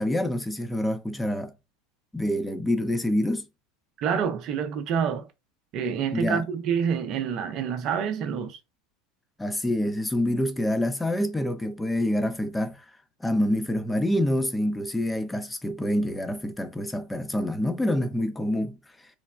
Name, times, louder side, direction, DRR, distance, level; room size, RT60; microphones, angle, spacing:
voice 1, 0.0-1.5 2.1-3.4 6.1-6.4 9.4-12.8 13.2-18.8, left 1 dB, 10° left, 0.6 m, -26 dB
voice 2, 4.0-5.3 5.7-8.6, right 7 dB, 55° right, 0.6 m, -27 dB
3.3 x 2.1 x 2.3 m
hypercardioid pair, 90°, 0 cm